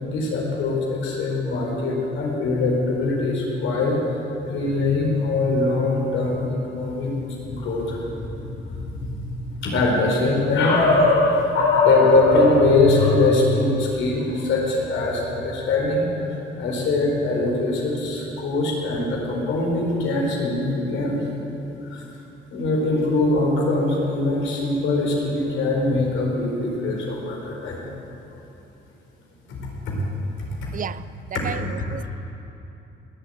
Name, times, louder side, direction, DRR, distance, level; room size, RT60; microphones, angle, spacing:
voice 1, 0.0-4.0 4.4-7.1 7.4-9.0 9.6-16.3 16.6-21.2 21.8-22.0 22.5-27.9 29.5-29.6 29.9-30.0 30.6-30.7 31.3-31.5, left 2 dB, 80° left, 4.4 m, -22 dB
voice 2, 30.7-32.1, right 8 dB, 45° right, 0.4 m, -33 dB
20.0 x 7.8 x 9.1 m
cardioid pair, 90°, 20 cm